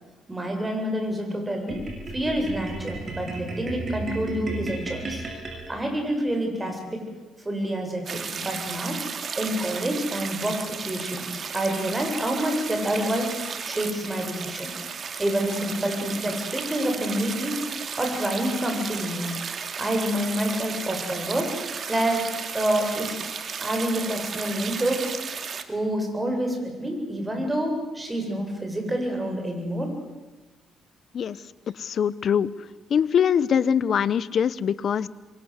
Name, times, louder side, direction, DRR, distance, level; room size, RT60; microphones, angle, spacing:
voice 1, 0.3-1.8 2.1-5.2 5.7-7.0 7.4-9.0 9.4-13.3 13.6-14.7 15.2-17.6 18.0-19.3 19.8-21.5 21.9-23.2 23.6-25.1 25.7-29.9, right 1 dB, 15° right, 3 dB, 7.6 m, -27 dB
sound 1, 1.7-6.2, right 3 dB, 35° right, 7.7 m, -34 dB
sound 2, 8.1-25.6, right 6 dB, 50° right, 2.3 m, -34 dB
voice 2, 31.7-32.5 32.9-35.1, left 8 dB, 60° left, 19 dB, 0.9 m, -23 dB
26.5 x 23.5 x 8.2 m, 1.2 s
cardioid pair, 90°, 0 cm